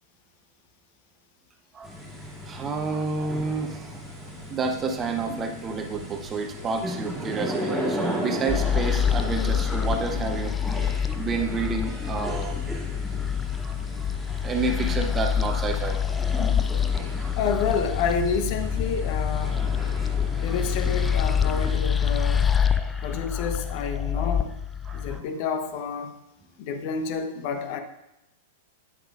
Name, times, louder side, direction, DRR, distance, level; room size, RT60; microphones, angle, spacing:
sound 1, 1.8-21.7, equal, 5° right, 2.5 m, -36 dB
voice 1, 2.4-4.0 4.5-12.5 13.6-14.1 14.4-16.0 16.3-16.5 17.2-17.4 20.4-20.6 22.7-23.2 24.8-25.2, right 4 dB, 20° right, 5 dB, 0.8 m, -30 dB
sound 2, 8.5-25.2, left 8 dB, 10° left, 0.3 m, -26 dB
voice 2, 17.3-19.6 20.4-22.5 23.0-24.5 24.9-26.2 26.6-27.8, left 5 dB, 45° left, 7 dB, 0.8 m, -29 dB
9.2 x 8.0 x 2.5 m, 0.91 s
figure-of-eight pair, 100°, 0 cm